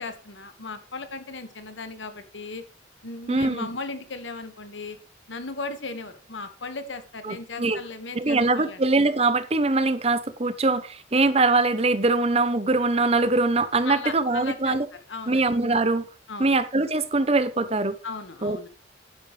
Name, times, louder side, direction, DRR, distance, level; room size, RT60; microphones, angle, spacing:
voice 1, 0.0-2.6 3.0-5.0 5.3-8.8 13.8-14.8 15.1-15.4 16.3-16.5 18.0-18.7, left 3 dB, 80° left, 1.7 m, -36 dB
voice 2, 3.3-3.7 7.2-7.8 8.1-14.9 15.3-16.1 16.4-18.0 18.4-18.7, right 3 dB, 35° right, 0.8 m, -22 dB
10.5 x 10.5 x 3.3 m
head